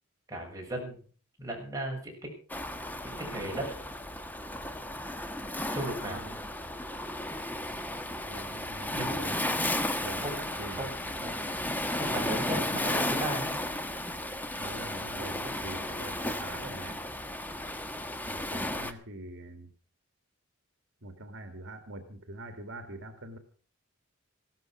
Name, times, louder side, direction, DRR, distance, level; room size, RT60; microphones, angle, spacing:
voice 1, 0.3-1.0 1.4-2.2 3.0-3.7 5.7-6.2 8.9-9.2 10.2-10.4 10.7-10.9 11.9-13.6, right 1 dB, 15° right, 0 dB, 7.2 m, -36 dB
Waves surf, 2.5-18.9, left 1 dB, 10° left, 1.3 m, -34 dB
voice 2, 6.0-6.4 8.3-9.6 10.0-11.4 12.5-12.7 14.6-17.0 18.3-19.7 21.0-23.4, right 1 dB, 60° right, 7 dB, 2.3 m, -44 dB
16.0 x 13.5 x 6.2 m, 0.42 s
head